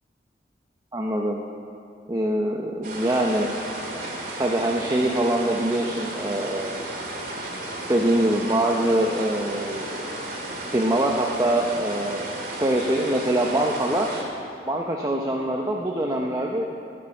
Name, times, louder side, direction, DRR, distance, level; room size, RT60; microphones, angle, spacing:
voice 1, 0.9-1.4 2.1-3.5 4.4-6.7 7.9-9.8 10.7-12.3 12.6-14.2 14.7-16.7, right 1 dB, 20° right, 0 dB, 0.7 m, -23 dB
sound 1, 2.8-14.2, right 1 dB, 50° right, 2.3 m, -34 dB
18.5 x 6.9 x 6.4 m, 2.5 s
head